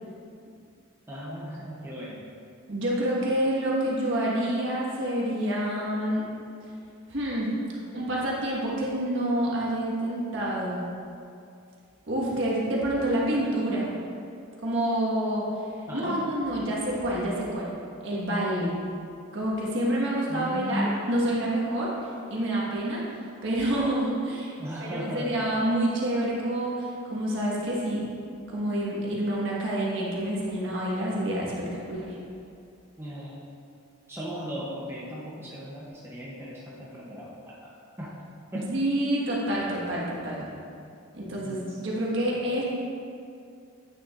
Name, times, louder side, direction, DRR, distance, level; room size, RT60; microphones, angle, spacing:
voice 1, 1.1-2.2 15.9-16.2 20.3-21.1 23.8-24.0 24.6-25.4 33.0-33.4 34.1-37.7 38.0-38.2 38.5-38.7 41.4-41.9, equal, 10° right, -6 dB, 0.7 m, -36 dB
voice 2, 2.7-6.3 7.1-7.5 7.9-10.8 12.1-13.9 14.6-15.4 15.9-17.7 18.0-18.7 19.3-21.9 22.3-23.0 23.4-24.5 24.8-28.0 28.5-32.2 38.5-40.4 41.1-42.6, right 1 dB, 60° right, -5 dB, 1.4 m, -28 dB
8.7 x 6.7 x 2.5 m, 2.5 s
head